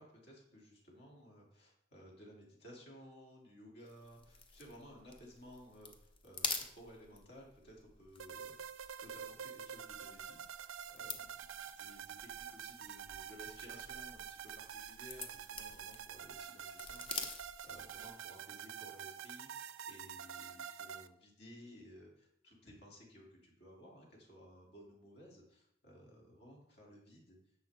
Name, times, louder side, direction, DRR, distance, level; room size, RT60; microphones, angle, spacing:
voice 1, 0.0-27.4, equal, 55° left, -2 dB, 3.1 m, -57 dB
sound 1, 3.8-18.2, left 4 dB, 25° left, 0.9 m, -48 dB
sound 2, 8.2-21.1, right 8 dB, 90° right, 0.5 m, -47 dB
11.0 x 7.4 x 3.7 m, 0.72 s
head